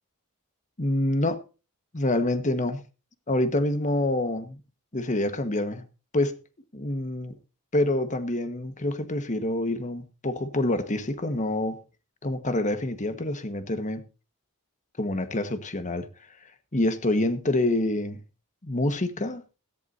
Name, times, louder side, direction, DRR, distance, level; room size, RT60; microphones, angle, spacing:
voice 1, 0.8-1.4 1.9-2.8 3.3-4.6 4.9-5.8 6.1-6.3 6.7-7.3 7.7-11.8 12.2-14.0 15.0-16.1 16.7-18.2 18.6-19.4, left 1 dB, 35° left, 1.4 m, -26 dB
17.0 x 14.5 x 2.7 m
head